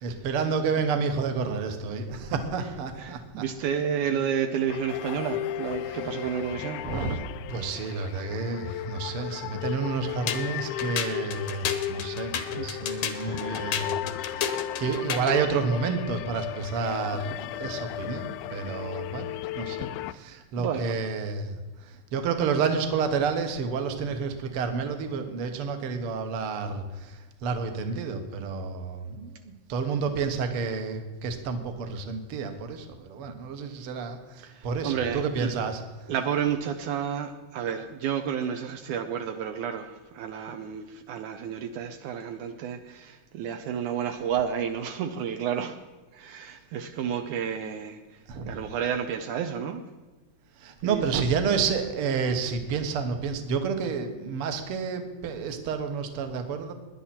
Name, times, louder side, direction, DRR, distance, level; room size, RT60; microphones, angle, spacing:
voice 1, 0.0-3.4 5.9-6.0 6.8-7.2 7.5-19.3 19.5-35.8 48.3-48.5 50.6-56.7, right 5 dB, 55° right, 6 dB, 1.9 m, -30 dB
voice 2, 3.0-6.9 12.6-13.6 14.4-14.5 16.8-16.9 20.6-21.0 34.4-35.5 36.1-45.8 46.1-49.8 50.8-51.2, right 8 dB, 75° right, 6 dB, 2.1 m, -31 dB
sound 1, 4.7-20.1, left 13 dB, 80° left, 2.0 m, -35 dB
sound 2, 10.3-15.4, left 8 dB, 60° left, 1.8 m, -32 dB
18.5 x 11.0 x 4.3 m, 1.3 s
omnidirectional pair, 3.7 m